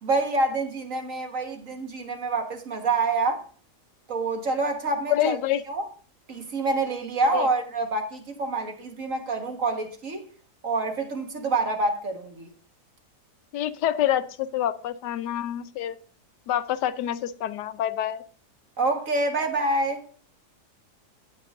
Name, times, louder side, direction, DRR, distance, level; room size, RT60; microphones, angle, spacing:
voice 1, 0.0-3.4 4.1-5.4 5.7-5.9 6.3-10.3 10.6-12.5 18.8-20.0, right 2 dB, 55° right, 1.8 m, -27 dB
voice 2, 5.1-5.6 7.3-7.5 13.5-16.0 16.5-18.2, left 11 dB, 85° left, 1.3 m, -27 dB
18.0 x 6.3 x 2.6 m
omnidirectional pair, 1.7 m